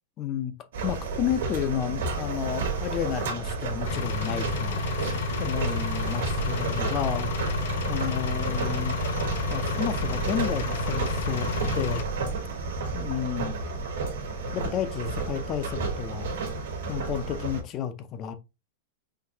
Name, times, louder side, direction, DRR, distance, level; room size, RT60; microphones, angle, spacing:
voice 1, 0.2-0.5 0.8-7.3 7.9-9.0 9.5-11.5 11.7-12.0 12.9-13.6 14.5-16.4 16.9-18.3, left 9 dB, 25° left, 0.5 m, -31 dB
sound 1, 0.7-17.6, right 4 dB, 80° right, 1.5 m, -31 dB
Engine, 3.9-12.0, left 4 dB, 70° left, 1.1 m, -31 dB
5.8 x 2.6 x 2.7 m
supercardioid pair, 160°, 0 cm